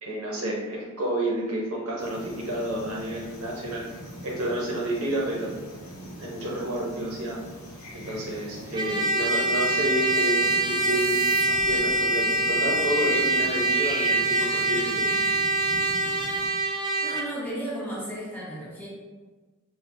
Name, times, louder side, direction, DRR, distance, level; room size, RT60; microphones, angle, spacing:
voice 1, 0.0-3.9 4.2-5.5 6.2-7.4 7.9-11.3 11.6-15.1, right 1 dB, 70° right, -3 dB, 0.6 m, -30 dB
sound 1, 2.0-16.5, equal, 80° left, 0.7 m, -41 dB
sound 2, 7.5-7.6 7.7-12.0, right 3 dB, 35° right, 0.9 m, -45 dB
Trumpet, 8.7-17.3, right 2 dB, 20° right, 0.4 m, -24 dB
voice 2, 17.0-18.9, right 1 dB, 10° left, -8 dB, 1.0 m, -34 dB
5.0 x 2.0 x 2.4 m, 1.3 s
head